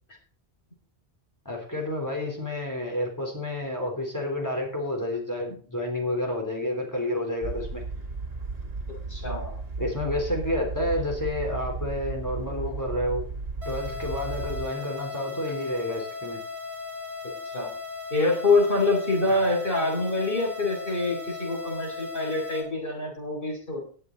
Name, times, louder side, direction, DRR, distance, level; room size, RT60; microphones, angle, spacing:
voice 1, 1.5-7.8 9.8-13.2 13.7-16.4 19.3-19.4, left 1 dB, 15° left, 0 dB, 3.8 m, -30 dB
sound 1, 7.4-14.7, right 3 dB, 65° right, 2.2 m, -34 dB
voice 2, 9.1-9.6 17.5-17.7 18.1-23.8, left 2 dB, 55° left, -1 dB, 4.3 m, -25 dB
sound 2, 13.6-22.6, left 4 dB, 45° right, 3.6 m, -37 dB
19.5 x 6.7 x 4.1 m, 0.41 s
omnidirectional pair, 1.1 m